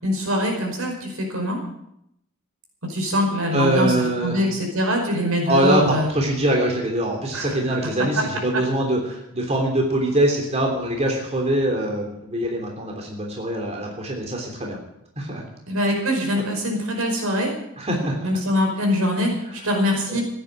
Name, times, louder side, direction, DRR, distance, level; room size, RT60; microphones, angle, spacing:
voice 1, 0.0-1.6 2.8-3.9 4.2-6.1 7.3-7.7 15.7-17.5 18.2-20.2, equal, 85° right, 2 dB, 5.4 m, -23 dB
voice 2, 3.5-4.4 5.5-14.8 15.2-15.5 16.3-16.4 17.8-18.3 20.1-20.2, right 1 dB, 30° right, 0 dB, 3.2 m, -23 dB
16.0 x 10.0 x 8.1 m, 0.78 s
head